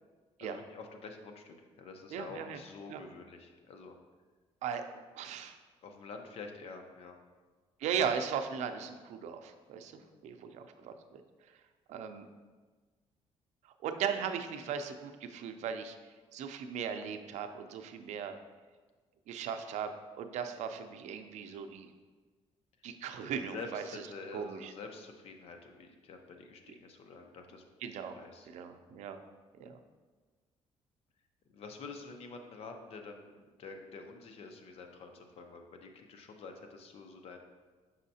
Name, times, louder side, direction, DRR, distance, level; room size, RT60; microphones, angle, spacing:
voice 1, 0.4-4.0 5.8-7.2 10.0-10.2 23.5-27.6 28.1-28.5 31.5-37.6, left 4 dB, 60° left, 4 dB, 0.6 m, -47 dB
voice 2, 2.1-2.6 2.9-3.0 4.6-5.6 7.8-11.2 11.9-12.3 13.6-16.0 16.3-18.3 19.3-21.9 22.8-23.8 24.3-24.7 27.8-28.2 28.5-29.2 29.6-29.8, right 7 dB, 80° right, 7 dB, 0.5 m, -38 dB
6.2 x 5.6 x 2.7 m, 1.4 s
cardioid pair, 150°, 12 cm